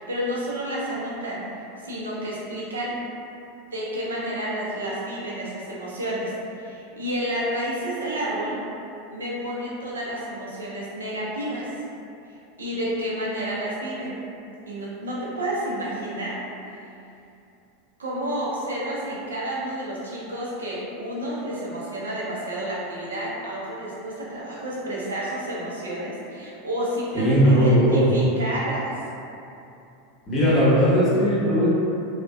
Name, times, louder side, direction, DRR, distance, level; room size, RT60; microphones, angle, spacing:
voice 1, 0.0-1.4 1.8-3.0 3.7-8.6 9.1-11.7 12.6-14.2 14.7-16.4 18.0-29.0, right 1 dB, 90° right, -6 dB, 0.5 m, -30 dB
voice 2, 27.1-28.1 30.3-31.7, equal, 30° left, -9 dB, 1.0 m, -18 dB
2.5 x 2.1 x 2.3 m, 2.7 s
hypercardioid pair, 95°, 0 cm